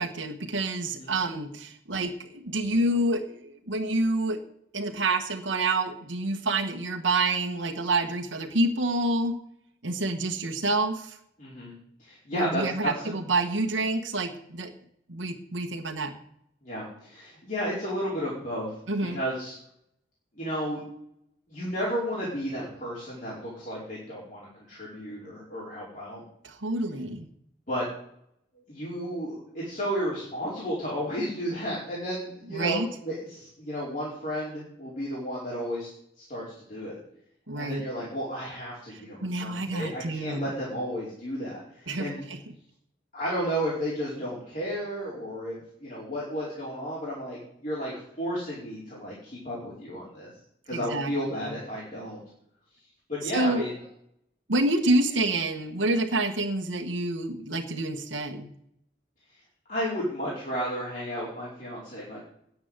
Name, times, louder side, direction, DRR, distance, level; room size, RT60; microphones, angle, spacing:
voice 1, 0.0-4.4 4.7-9.3 9.8-11.2 12.3-14.7 15.1-16.1 18.9-19.2 26.4-27.3 32.5-32.9 37.5-37.8 38.9-40.5 41.9-42.4 50.7-51.1 53.3-53.6 54.5-58.5, right 2 dB, 85° right, 4 dB, 1.3 m, -28 dB
voice 2, 11.4-11.7 12.0-13.1 16.6-18.7 19.1-19.6 20.3-20.8 21.5-26.2 27.7-27.9 28.7-35.9 36.2-36.4 36.7-37.0 37.5-42.2 43.1-50.3 50.6-52.2 53.1-53.8 59.7-62.2, equal, 45° left, -7 dB, 4.9 m, -33 dB
10.0 x 9.6 x 8.1 m, 0.72 s
head